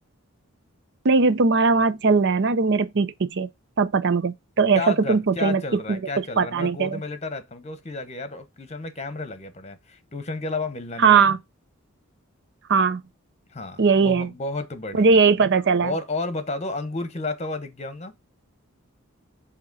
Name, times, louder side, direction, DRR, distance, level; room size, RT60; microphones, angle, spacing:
voice 1, 1.0-3.5 3.8-6.0 6.4-7.0 11.0-11.4 12.7-13.0 13.8-14.3 14.9-15.9, right 4 dB, 55° right, 0.6 m, -19 dB
voice 2, 4.7-11.2 13.5-15.2 15.8-18.1, left 3 dB, 30° left, 0.9 m, -32 dB
7.6 x 2.9 x 5.3 m
head